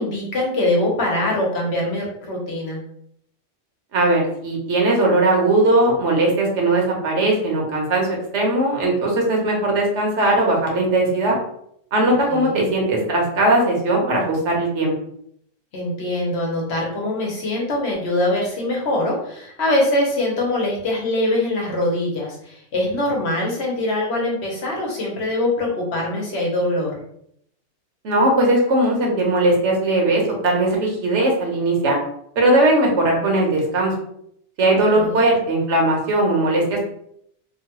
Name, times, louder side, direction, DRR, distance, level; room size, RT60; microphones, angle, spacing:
voice 1, 0.0-2.8 12.3-12.6 15.7-27.0 34.7-35.2, left 1 dB, 65° left, -3 dB, 1.1 m, -23 dB
voice 2, 3.9-8.1 8.3-11.3 11.9-14.9 28.0-32.0 32.4-33.9 34.6-36.9, right 2 dB, 80° right, 0 dB, 1.1 m, -19 dB
3.0 x 2.2 x 2.9 m, 0.70 s
omnidirectional pair, 1.2 m